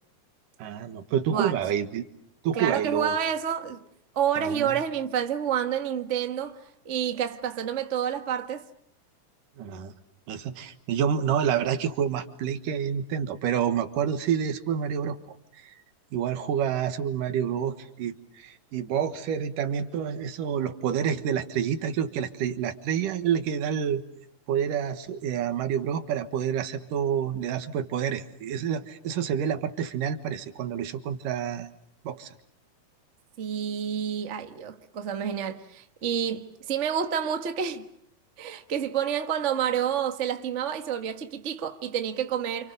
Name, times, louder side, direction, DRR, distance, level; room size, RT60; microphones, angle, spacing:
voice 1, 0.6-2.1 2.4-3.2 4.4-4.8 9.6-9.9 10.3-15.2 15.6-15.8 16.1-24.0 24.5-31.7 32.0-32.3, right 8 dB, 75° right, 3.0 m, -28 dB
voice 2, 2.6-3.8 4.1-8.6 33.4-37.9 38.4-42.7, right 8 dB, 45° right, 0.9 m, -29 dB
29.0 x 28.5 x 6.8 m
omnidirectional pair, 3.9 m